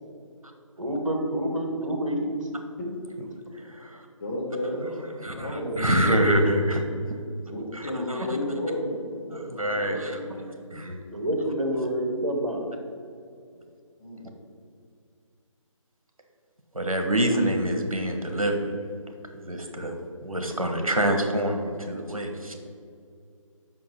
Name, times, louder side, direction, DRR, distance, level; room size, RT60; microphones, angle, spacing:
voice 1, 0.8-2.3 8.2-8.3 10.3-10.4 11.1-12.6, right 1 dB, 65° right, 3 dB, 1.6 m, -28 dB
voice 2, 3.6-4.0 5.2-6.8 7.7-8.2 9.3-10.2 10.7-11.0 16.7-18.7 19.3-22.5, right 1 dB, 80° right, 4 dB, 1.3 m, -26 dB
voice 3, 4.2-6.5 7.5-10.1 13.5-13.7 14.0-14.3, left 1 dB, 35° left, -4 dB, 1.7 m, -32 dB
5.6 x 5.3 x 5.6 m, 2.4 s
figure-of-eight pair, 150°, 17 cm